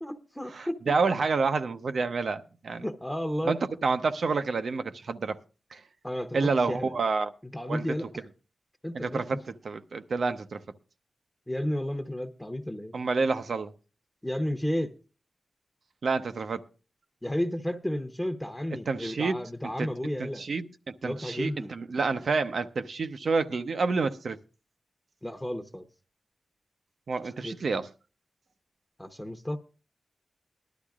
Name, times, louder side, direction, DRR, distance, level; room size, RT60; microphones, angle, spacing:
voice 1, 0.0-1.0 2.8-3.6 6.0-7.0 7.4-8.3 8.8-9.4 11.5-13.0 14.2-14.9 17.2-20.4 21.0-21.7 25.2-25.9 27.4-27.6 29.0-29.6, left 1 dB, 10° left, 0.8 m, -32 dB
voice 2, 0.9-2.8 3.5-5.4 5.7-5.8 6.3-7.3 7.7-7.8 8.9-9.4 9.6-10.6 12.9-13.7 16.0-16.6 18.9-19.4 19.8-19.9 20.2-24.4 27.1-27.9, right 4 dB, 75° right, 0.7 m, -28 dB
19.5 x 11.5 x 2.4 m
wide cardioid pair, 70°, 0 cm